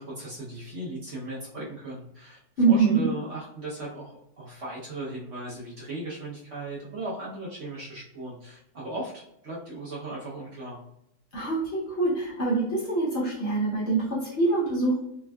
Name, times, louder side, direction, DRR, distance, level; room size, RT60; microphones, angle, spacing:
voice 1, 0.0-10.8, right 2 dB, 55° right, -7 dB, 0.9 m, -37 dB
voice 2, 2.6-3.0 11.3-15.0, right 3 dB, 50° left, -7 dB, 0.9 m, -24 dB
3.4 x 2.2 x 2.2 m, 0.78 s
omnidirectional pair, 1.7 m